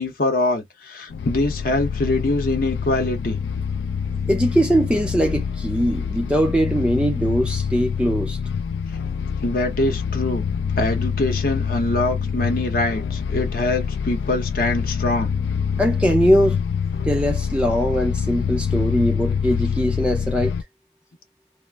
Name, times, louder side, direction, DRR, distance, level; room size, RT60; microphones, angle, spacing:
voice 1, 0.0-3.4 9.4-10.4 10.8-15.3, left 2 dB, 50° left, 0.7 m, -23 dB
sound 1, 1.1-20.6, left 6 dB, 70° left, 0.3 m, -26 dB
voice 2, 4.3-8.4 15.8-16.6 17.1-20.5, equal, 5° right, 0.4 m, -21 dB
2.4 x 2.1 x 3.3 m
head